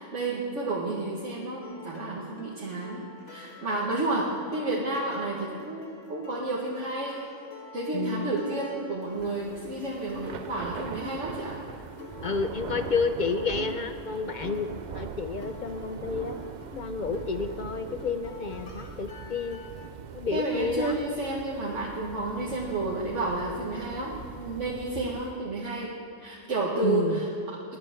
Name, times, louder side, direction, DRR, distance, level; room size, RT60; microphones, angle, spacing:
voice 1, 0.0-7.2 7.7-11.6 20.3-25.9 26.2-27.3, right 2 dB, 70° right, -5 dB, 1.9 m, -31 dB
sound 1, 1.6-19.9, left 1 dB, 85° left, 1.7 m, -47 dB
voice 2, 7.9-8.3 12.2-16.4 16.8-19.6 20.1-20.9 26.8-27.2, left 5 dB, 50° left, 8 dB, 0.6 m, -30 dB
Thunder / Rain, 9.1-25.4, right 6 dB, 55° right, 0.5 m, -42 dB
21.0 x 11.0 x 3.6 m, 2.8 s
omnidirectional pair, 1.3 m